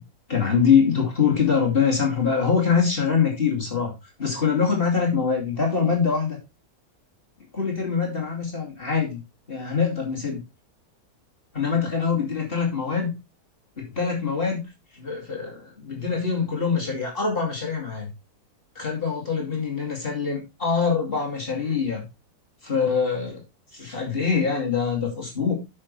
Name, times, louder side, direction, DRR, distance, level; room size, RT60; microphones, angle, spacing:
voice 1, 0.3-3.9 4.2-6.4 7.5-9.2 9.5-10.4 11.5-13.1 13.8-14.6 14.9-18.1 18.8-22.0 22.6-23.4 23.7-25.5, left 6 dB, 35° left, -1 dB, 2.6 m, -24 dB
9.5 x 6.6 x 3.2 m, 0.25 s
omnidirectional pair, 1.6 m